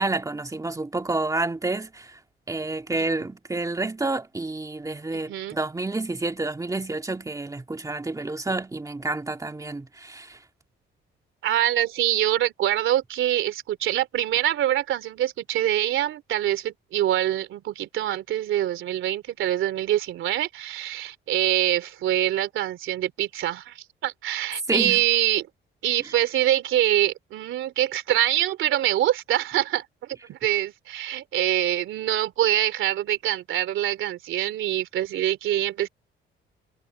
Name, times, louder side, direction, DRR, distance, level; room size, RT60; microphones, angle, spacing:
voice 1, 0.0-2.2 2.5-10.4 24.7-25.0, right 2 dB, 15° right, 2.1 m, -29 dB
voice 2, 11.4-25.5 25.8-35.9, right 12 dB, 80° right, 3.1 m, -25 dB
cardioid pair, 90°, 20 cm